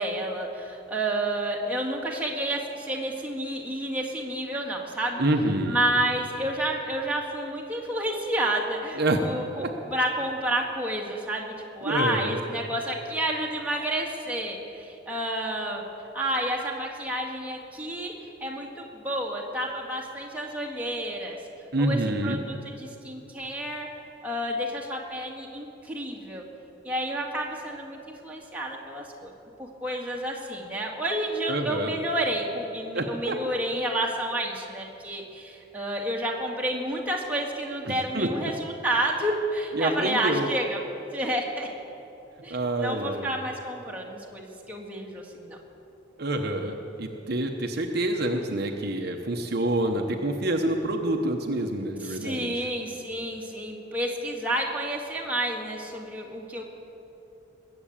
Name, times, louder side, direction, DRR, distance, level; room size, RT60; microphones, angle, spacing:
voice 1, 0.0-5.2 5.7-15.8 16.1-18.1 18.4-21.4 21.8-23.9 24.2-26.4 26.8-29.3 29.6-40.8 41.1-41.7 42.4-45.6 52.0-56.6, right 1 dB, 10° right, -2 dB, 2.0 m, -30 dB
voice 2, 5.2-5.8 9.0-9.2 9.6-9.7 11.8-12.4 21.7-22.4 31.5-31.9 32.9-33.4 37.8-38.3 39.7-40.5 42.5-43.3 46.2-52.7, right 1 dB, 55° right, 3 dB, 1.0 m, -27 dB
20.5 x 7.9 x 8.7 m, 2.9 s
head